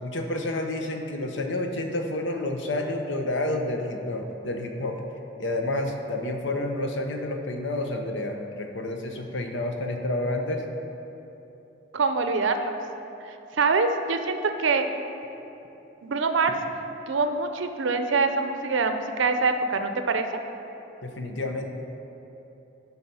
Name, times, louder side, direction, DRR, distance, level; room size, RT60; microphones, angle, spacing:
voice 1, 0.0-5.0 5.4-10.6 21.0-21.7, left 1 dB, 70° left, 4 dB, 0.8 m, -29 dB
voice 2, 11.9-12.8 13.6-14.9 16.0-16.5 17.1-20.4, right 4 dB, 75° right, 7 dB, 0.6 m, -24 dB
12.0 x 4.2 x 5.5 m, 3.0 s
head